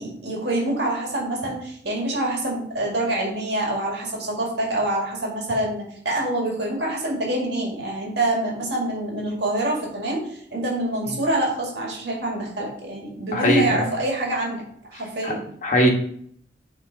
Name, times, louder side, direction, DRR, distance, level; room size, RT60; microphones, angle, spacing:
voice 1, 0.0-14.6 14.9-15.4, right 1 dB, 70° right, -2 dB, 2.0 m, -26 dB
voice 2, 13.3-13.8 15.2-15.3 15.6-15.9, equal, 45° left, 0 dB, 1.3 m, -20 dB
7.9 x 3.3 x 4.0 m, 0.64 s
head